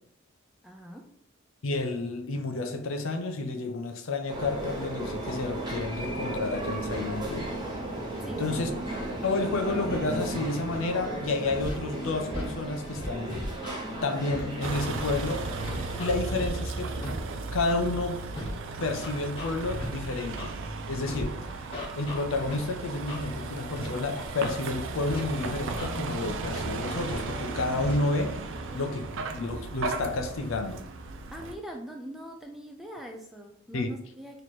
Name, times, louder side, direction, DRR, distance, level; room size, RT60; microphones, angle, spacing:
voice 1, 0.6-1.0 8.2-8.7 31.3-34.4, equal, ahead, 0.4 m, -42 dB
voice 2, 1.6-7.5 8.1-8.7 9.2-13.4 14.0-15.5 16.0-17.0 17.5-18.2 18.8-20.5 20.9-21.6 22.0-28.4 28.7-29.1 29.3-30.9 33.7-33.9, left 2 dB, 65° left, 0.5 m, -30 dB
sound 1, 4.3-16.0, right 1 dB, 20° right, 0.8 m, -35 dB
Scratching (performance technique), 11.6-11.8 12.3-12.5 13.0-13.8 14.3-14.4 15.0-15.1 15.7-16.5 17.0-17.1 17.7-17.9 18.4-18.5 19.0-19.9 20.4-20.5 21.1-21.2 21.7-22.6 23.1-23.2 23.7-23.9 24.2-24.5 25.1-25.2 25.7-25.9 26.4-26.6 27.1-27.3 27.8-28.0, left 1 dB, 25° left, 1.0 m, -37 dB
Vehicle, 14.6-31.6, right 3 dB, 60° right, 0.4 m, -35 dB
3.1 x 2.9 x 4.1 m
head